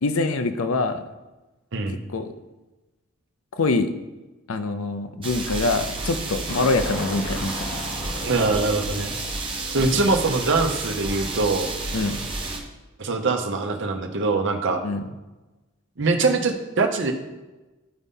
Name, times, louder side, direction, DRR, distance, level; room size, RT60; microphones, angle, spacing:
voice 1, 0.0-1.0 2.1-2.3 3.6-3.9 4.5-7.8 9.9-10.0 11.9-12.2 14.8-15.0, left 3 dB, 85° left, 9 dB, 0.6 m, -24 dB
sound 1, 5.2-12.6, right 3 dB, 25° right, 1.1 m, -31 dB
sound 2, 6.5-10.9, left 1 dB, 45° left, 1.1 m, -36 dB
voice 2, 8.2-9.2 9.7-11.7 13.0-14.8 16.0-17.1, right 3 dB, 60° right, 4 dB, 0.9 m, -23 dB
11.0 x 4.0 x 3.7 m, 1.1 s
head